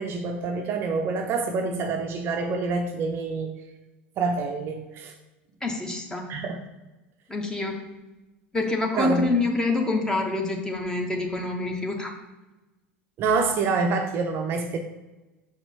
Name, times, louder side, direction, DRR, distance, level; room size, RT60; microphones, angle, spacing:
voice 1, 0.0-3.5 4.2-5.1 6.3-6.6 9.0-9.3 13.2-14.8, right 4 dB, 40° right, 5 dB, 0.6 m, -26 dB
voice 2, 5.6-6.4 7.3-8.0 8.5-12.1, left 2 dB, 10° left, 2 dB, 1.1 m, -26 dB
6.6 x 4.9 x 3.4 m, 1.1 s
figure-of-eight pair, 75°, 6 cm